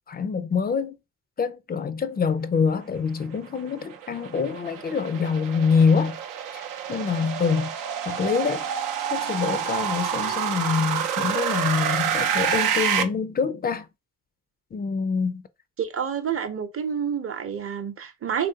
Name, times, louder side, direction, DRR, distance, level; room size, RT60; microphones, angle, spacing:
voice 1, 0.1-1.0 1.4-6.2 6.5-7.7 8.1-8.6 9.1-13.9 14.7-15.4, left 5 dB, 30° left, 0.4 m, -25 dB
sound 1, 3.5-13.0, right 8 dB, 80° right, 0.6 m, -28 dB
voice 2, 15.8-18.5, right 7 dB, 45° right, 0.7 m, -28 dB
3.1 x 2.5 x 2.8 m
supercardioid pair, 60°, 32 cm